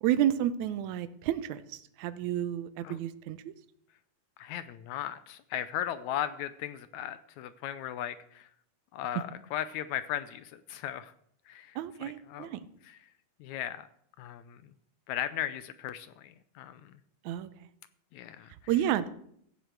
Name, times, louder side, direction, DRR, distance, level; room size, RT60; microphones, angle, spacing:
voice 1, 0.0-3.5 11.8-12.6 17.3-17.5 18.7-19.1, right 11 dB, 75° right, 13 dB, 1.9 m, -30 dB
voice 2, 4.4-8.5 8.9-11.1 11.5-12.5 12.9-13.0 13.4-13.9 14.2-14.6 15.1-16.9 18.1-18.5, left 11 dB, 80° left, 13 dB, 1.7 m, -37 dB
15.0 x 7.8 x 6.5 m, 0.68 s
omnidirectional pair, 3.8 m